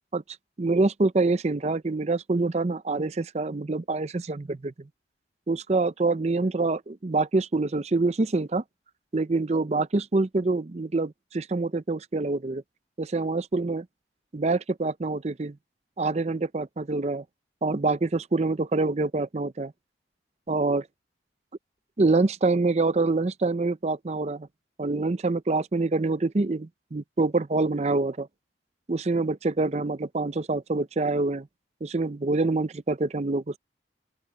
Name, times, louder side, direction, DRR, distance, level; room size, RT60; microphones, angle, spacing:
voice 1, 0.6-4.7 5.5-8.6 9.1-12.6 13.0-13.9 14.3-15.6 16.0-17.2 17.6-19.7 20.5-20.9 22.0-24.5 24.8-28.3 28.9-31.5 31.8-33.6, right 3 dB, 35° right, 0.5 m, -26 dB
open air
head